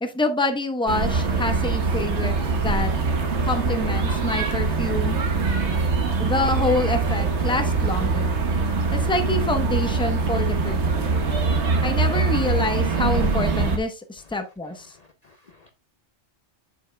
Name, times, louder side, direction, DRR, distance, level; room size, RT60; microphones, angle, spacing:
voice 1, 0.0-2.9 3.4-5.2 6.2-8.4 8.9-11.2 11.8-14.9, left 2 dB, 5° left, 0.7 m, -27 dB
sound 1, 0.9-13.8, right 4 dB, 75° right, 1.4 m, -23 dB
voice 2, 14.9-15.7, left 3 dB, 45° left, 0.6 m, -55 dB
8.4 x 7.1 x 2.2 m
omnidirectional pair, 1.2 m